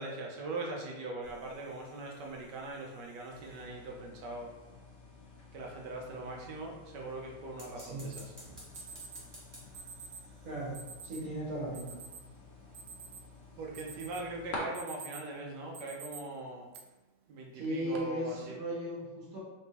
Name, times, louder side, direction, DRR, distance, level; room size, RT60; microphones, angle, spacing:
voice 1, 0.0-4.5 5.5-8.2 13.6-16.8 17.3-18.6, right 2 dB, 70° right, 0 dB, 1.1 m, -41 dB
sound 1, 1.2-4.1 7.4-10.7, equal, 20° right, 0.6 m, -55 dB
sound 2, 3.3-14.6, left 4 dB, 50° left, 0.9 m, -51 dB
voice 2, 7.8-8.1 10.4-10.8 11.0-12.0 17.5-19.4, equal, 45° right, -6 dB, 1.5 m, -37 dB
Alarm, 8.1-8.2 8.7-9.2 9.7-10.2 10.7-11.2 11.7-12.2 12.6-13.4 13.7-14.3 14.6-15.3 15.7-16.2 16.7-16.8 17.6-18.0, right 6 dB, 90° right, 1.5 m, -47 dB
3.9 x 3.6 x 2.8 m, 1.1 s
omnidirectional pair, 2.3 m